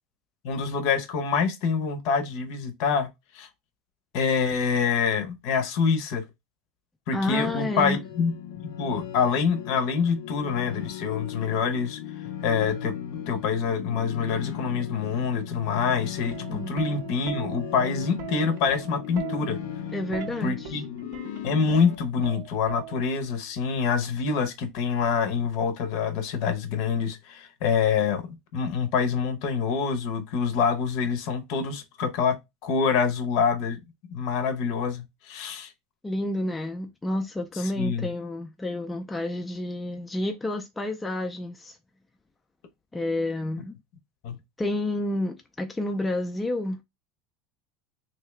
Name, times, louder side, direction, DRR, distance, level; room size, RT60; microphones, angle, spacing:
voice 1, 0.4-3.1 3.3-3.5 4.1-6.2 7.1-8.3 8.8-12.0 12.4-19.6 20.4-20.8 21.4-32.3 32.6-33.8 34.1-35.7 37.5-38.1 44.2-44.4, left 6 dB, 55° left, 0.7 m, -26 dB
voice 2, 7.1-8.0 16.5-16.7 19.9-20.8 36.0-41.7 42.9-43.7 44.6-46.8, left 1 dB, 10° left, 0.3 m, -30 dB
sound 1, 7.2-22.0, left 9 dB, 85° left, 0.6 m, -37 dB
Plucked string instrument, 16.2-23.3 24.4-24.7, right 10 dB, 50° right, 0.5 m, -40 dB
3.3 x 2.8 x 3.1 m
supercardioid pair, 170°, 0 cm